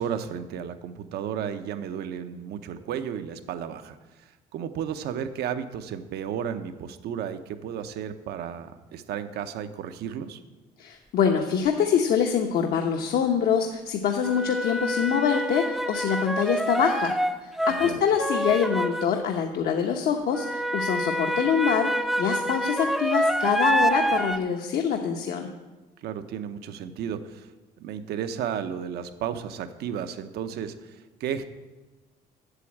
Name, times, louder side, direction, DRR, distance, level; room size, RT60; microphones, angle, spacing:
voice 1, 0.0-4.0 4.5-10.4 17.7-18.0 26.0-27.5 27.8-31.4, right 8 dB, 75° right, 10 dB, 0.8 m, -33 dB
voice 2, 10.8-17.2 17.4-25.5, left 7 dB, 65° left, 3 dB, 0.9 m, -25 dB
sound 1, 11.3-11.4 14.2-19.3 20.3-24.4, right 1 dB, ahead, 0.5 m, -27 dB
8.2 x 7.1 x 8.6 m, 1.2 s
cardioid pair, 110°, 17 cm